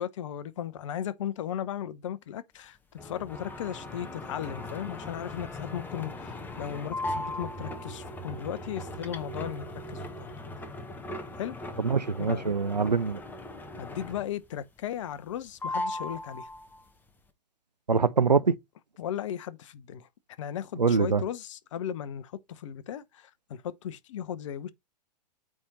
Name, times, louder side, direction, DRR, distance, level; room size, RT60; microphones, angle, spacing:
voice 1, 0.0-10.4 11.4-11.6 12.2-12.5 13.8-16.5 19.0-20.1 20.4-24.7, left 10 dB, 50° left, 0.9 m, -36 dB
sound 1, 3.0-14.5 14.8-15.4 15.6-16.9, left 1 dB, 10° left, 1.0 m, -38 dB
voice 2, 11.8-13.2 17.9-18.5 20.8-21.2, right 5 dB, 85° right, 0.6 m, -24 dB
8.8 x 3.6 x 4.1 m
figure-of-eight pair, 110°, 21 cm